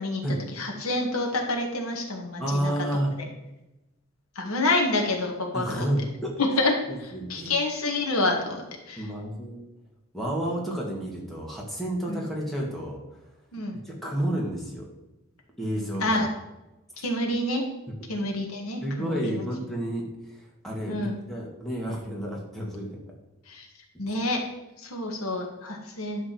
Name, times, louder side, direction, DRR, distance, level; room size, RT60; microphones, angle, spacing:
voice 1, 0.5-2.7 3.2-3.3 4.4-5.9 6.4-6.7 7.0-9.1 12.1-12.2 13.5-13.8 16.0-16.3 17.0-17.6 18.1-19.4 20.9-21.2 23.5-23.7 24.0-24.5 24.8-26.3, left 2 dB, 90° left, 1 dB, 2.0 m, -28 dB
voice 2, 2.4-3.1 5.5-6.4 6.9-7.5 9.0-9.6 10.1-13.0 13.8-14.9 15.6-16.2 18.8-23.0, right 1 dB, ahead, -3 dB, 2.1 m, -30 dB
11.0 x 3.9 x 7.8 m, 0.97 s
head